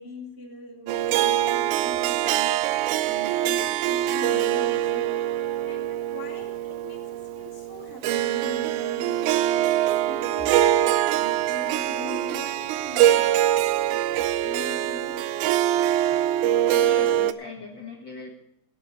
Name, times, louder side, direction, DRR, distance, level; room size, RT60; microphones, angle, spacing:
voice 1, 0.0-5.2 5.6-13.7 14.4-15.3, left 1 dB, 10° right, 0 dB, 1.1 m, -41 dB
Harp, 0.9-17.3, right 12 dB, 80° right, 1.8 m, -24 dB
voice 2, 16.7-18.3, left 4 dB, 45° left, 0 dB, 1.7 m, -40 dB
16.5 x 11.5 x 4.4 m, 0.83 s
omnidirectional pair, 4.0 m